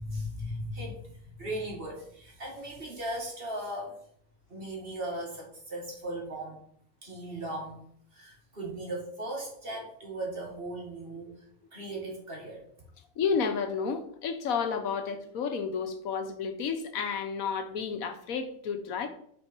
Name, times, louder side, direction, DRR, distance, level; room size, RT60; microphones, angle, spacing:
voice 1, 0.0-4.0 4.5-6.6 7.0-7.9 8.1-11.3 11.7-12.6, right 1 dB, 40° right, 2.3 m, -37 dB
voice 2, 13.2-19.1, left 6 dB, 85° left, 1.3 m, -31 dB
8.6 x 4.5 x 4.5 m
omnidirectional pair, 1.4 m